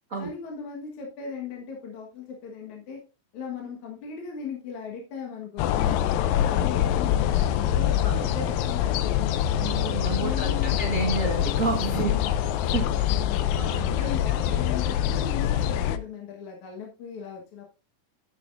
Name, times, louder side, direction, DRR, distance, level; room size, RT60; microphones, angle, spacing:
voice 1, 0.2-3.0 3.3-6.0 6.3-9.7 10.2-10.8 12.0-12.4 12.9-13.5 13.9-17.6, left 6 dB, 60° left, 0 dB, 2.7 m, -38 dB
sound 1, 5.6-16.0, left 11 dB, 90° left, 2.5 m, -25 dB
voice 2, 9.6-12.1 12.6-12.9 13.5-14.6, right 4 dB, 85° right, 0 dB, 0.7 m, -31 dB
10.0 x 9.1 x 2.6 m, 0.32 s
omnidirectional pair, 4.0 m